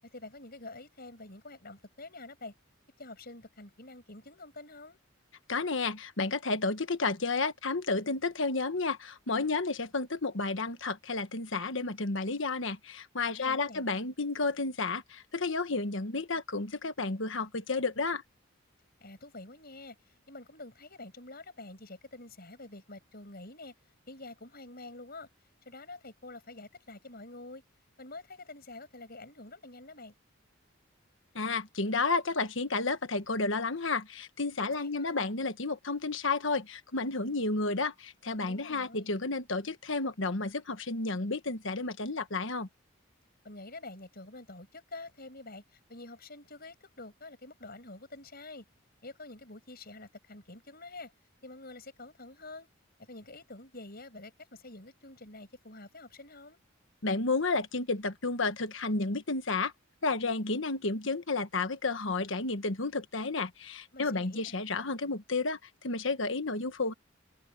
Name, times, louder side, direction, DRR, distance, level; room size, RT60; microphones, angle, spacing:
voice 1, 0.0-2.5 3.0-5.0 13.3-13.9 19.0-20.0 20.3-23.7 24.1-25.3 25.7-27.6 28.0-30.1 34.6-35.3 38.5-39.2 43.4-48.7 49.0-51.1 51.4-52.7 53.1-56.6 63.9-64.5, left 2 dB, 50° left, 7.2 m, -47 dB
voice 2, 5.5-18.2 31.3-42.7 57.0-59.7 60.0-66.9, left 3 dB, 65° left, 1.4 m, -31 dB
head